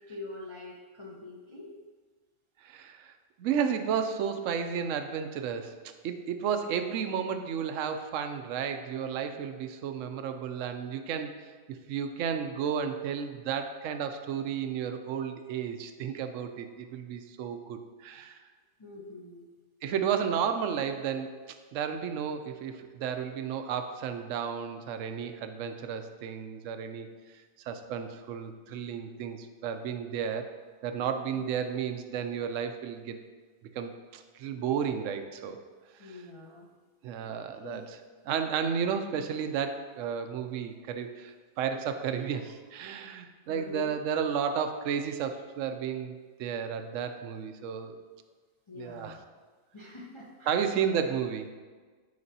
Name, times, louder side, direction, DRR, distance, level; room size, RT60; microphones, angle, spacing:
voice 1, 0.1-1.7 18.8-19.4 31.3-31.4 36.0-36.7 37.6-37.9 43.5-43.9 48.7-49.2 49.7-50.7, left 3 dB, 35° left, -3 dB, 0.5 m, -44 dB
voice 2, 2.6-3.1 3.4-5.7 6.0-11.4 11.7-18.4 19.8-27.1 27.6-30.5 30.8-33.2 33.7-35.6 36.0-36.2 37.0-37.8 38.2-48.0 48.8-49.2 50.5-51.5, right 7 dB, 70° right, 7 dB, 0.9 m, -32 dB
9.5 x 5.1 x 2.7 m, 1.4 s
omnidirectional pair, 1.5 m